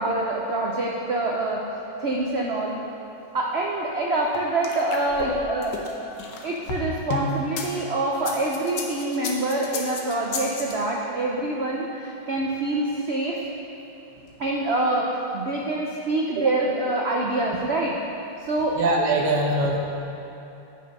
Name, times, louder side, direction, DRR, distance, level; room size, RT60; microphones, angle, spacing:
voice 1, 0.0-2.7 3.3-5.8 6.4-13.4 14.4-18.0 18.4-18.8, right 2 dB, 90° right, -2 dB, 0.5 m, -26 dB
sound 1, 4.3-7.7 8.1-10.7, left 4 dB, 70° left, 1.5 m, -32 dB
voice 2, 18.8-19.8, right 2 dB, 65° right, 0 dB, 1.4 m, -22 dB
9.0 x 5.9 x 5.3 m, 2.9 s
omnidirectional pair, 2.1 m